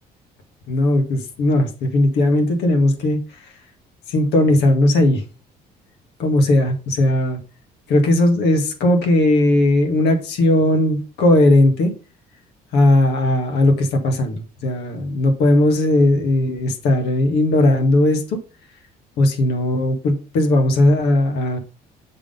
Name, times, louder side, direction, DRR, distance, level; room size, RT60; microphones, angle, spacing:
voice 1, 0.7-3.2 4.1-5.2 6.2-7.4 7.9-11.9 12.7-18.4 19.2-21.6, left 1 dB, 80° left, 5 dB, 1.8 m, -17 dB
6.5 x 3.8 x 5.2 m, 0.34 s
cardioid pair, 110°, 17 cm